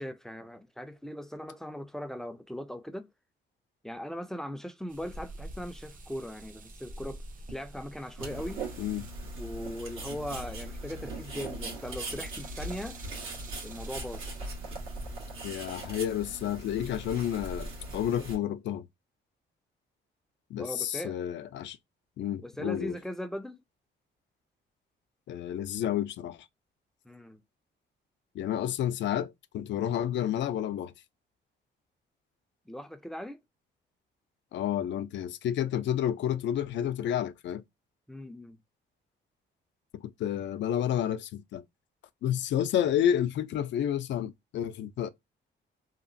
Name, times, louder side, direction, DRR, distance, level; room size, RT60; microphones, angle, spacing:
voice 1, 0.0-3.1 3.8-7.2 7.5-8.6 9.4-13.0 13.6-14.3 20.5-21.2 22.4-23.6 27.0-27.4 32.7-33.4 38.1-38.6, equal, ahead, 0.4 m, -39 dB
sound 1, 4.9-15.2, right 1 dB, 45° right, 0.6 m, -46 dB
sound 2, 8.2-18.4, right 2 dB, 85° right, 1.4 m, -40 dB
voice 2, 15.4-18.9 20.5-21.8 22.2-23.0 25.3-26.5 28.3-30.9 34.5-37.6 39.9-41.6 42.2-45.1, left 10 dB, 65° left, 0.4 m, -30 dB
2.9 x 2.4 x 2.6 m
cardioid pair, 90°, 20 cm